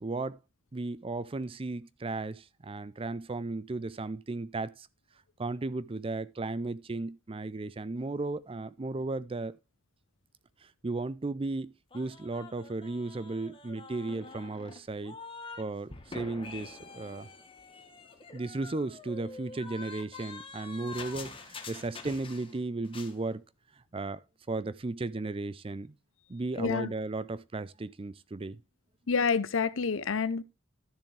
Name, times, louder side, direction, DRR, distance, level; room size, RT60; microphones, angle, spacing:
voice 1, 0.0-0.4 0.7-4.9 5.4-9.6 10.8-15.2 15.6-17.3 18.3-23.4 23.9-24.2 24.5-25.9 26.3-28.6, right 2 dB, 30° right, 0.5 m, -35 dB
sound 1, 11.9-15.6 15.9-22.6 22.8-23.2, left 4 dB, 25° left, 1.3 m, -46 dB
voice 2, 26.6-26.9 29.1-30.4, left 5 dB, 85° left, 0.7 m, -28 dB
12.5 x 6.9 x 3.3 m
head